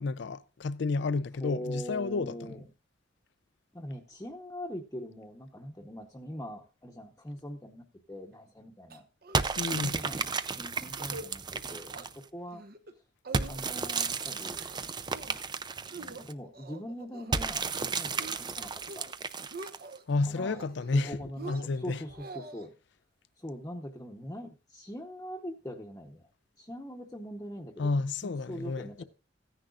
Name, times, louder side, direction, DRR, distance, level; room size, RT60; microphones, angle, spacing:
voice 1, 0.0-2.6 9.6-10.0 20.1-21.2 21.5-22.0 27.8-29.0, left 3 dB, 65° left, 0.5 m, -31 dB
voice 2, 1.4-2.6 3.7-9.0 9.7-12.6 13.5-14.7 15.8-19.1 20.2-20.6 20.9-22.7 23.4-26.3 26.6-27.9 28.2-29.0, equal, 15° left, 0.9 m, -42 dB
sound 1, 8.9-9.5 9.7-9.8 10.2-10.4 10.9-11.3 11.6-12.1 12.5-12.9 13.2-13.9 14.3-14.8 15.1-15.5 15.9-17.4 17.8-18.4 18.7-19.1 19.4-20.0 20.5-21.0 21.4-22.7, right 3 dB, 55° right, 1.1 m, -45 dB
sound 2, 9.3-12.2 13.3-16.3 17.3-20.0, right 4 dB, 25° right, 0.5 m, -33 dB
15.5 x 10.0 x 2.4 m
head